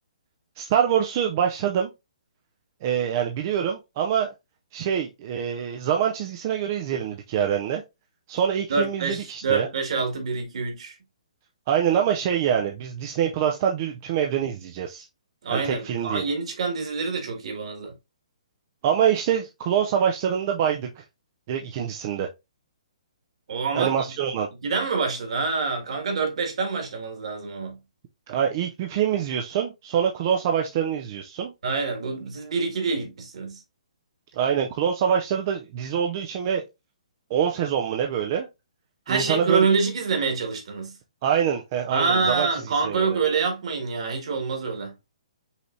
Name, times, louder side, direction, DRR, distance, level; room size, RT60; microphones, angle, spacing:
voice 1, 0.6-1.9 2.8-4.3 4.7-7.8 8.3-9.7 11.7-15.1 15.5-16.3 18.8-21.0 21.5-22.3 23.7-24.5 28.3-31.5 34.3-36.6 37.3-38.5 39.1-39.7 41.2-43.1, right 8 dB, 25° right, 0.4 m, -25 dB
voice 2, 8.7-11.0 15.4-17.9 23.5-24.1 24.6-27.8 31.6-33.6 39.1-41.0 41.9-44.9, right 4 dB, 55° right, 1.8 m, -26 dB
5.4 x 3.2 x 2.6 m
hypercardioid pair, 170°, 4 cm